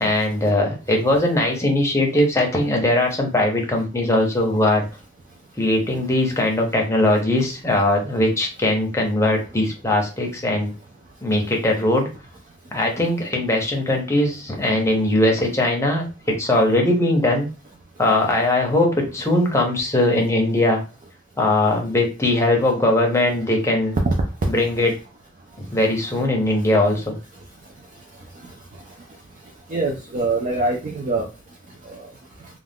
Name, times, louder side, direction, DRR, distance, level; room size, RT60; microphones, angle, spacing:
voice 1, 0.0-4.8 5.6-10.7 11.2-12.1 12.7-16.1 16.4-17.5 18.0-20.8 21.4-23.9 24.5-24.9 25.7-27.2, left 1 dB, 15° left, 0 dB, 0.7 m, -20 dB
voice 2, 29.7-31.3 31.9-32.0, right 2 dB, 40° right, 1 dB, 0.4 m, -23 dB
2.4 x 2.3 x 3.4 m, 0.32 s
head